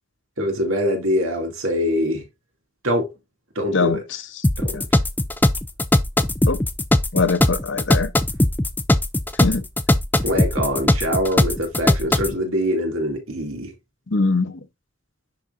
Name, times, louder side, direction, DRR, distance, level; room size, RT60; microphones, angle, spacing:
voice 1, 0.4-2.2 2.8-3.1 3.5-4.0 4.6-4.8 10.2-13.7, equal, 80° right, 2.4 m, -23 dB
sound 1, 4.4-12.3, left 1 dB, 10° left, 0.4 m, -19 dB
voice 2, 7.1-8.1 9.4-9.6 14.1-14.6, left 3 dB, 60° left, 0.8 m, -22 dB
10.5 x 3.9 x 2.5 m
head